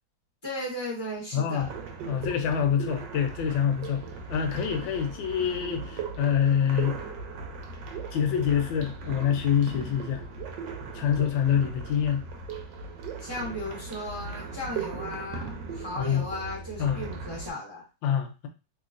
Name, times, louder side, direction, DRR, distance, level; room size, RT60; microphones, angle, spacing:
voice 1, 0.4-1.7 13.2-17.8, left 1 dB, 20° right, 0.6 m, -36 dB
voice 2, 1.3-1.7 2.1-4.0 4.3-7.0 8.1-10.2 10.9-12.3 16.0-16.3 16.8-17.0 18.0-18.5, left 8 dB, 80° left, 1.3 m, -26 dB
sound 1, 1.6-17.5, right 4 dB, 75° right, 1.2 m, -38 dB
3.0 x 2.8 x 2.4 m
omnidirectional pair, 2.1 m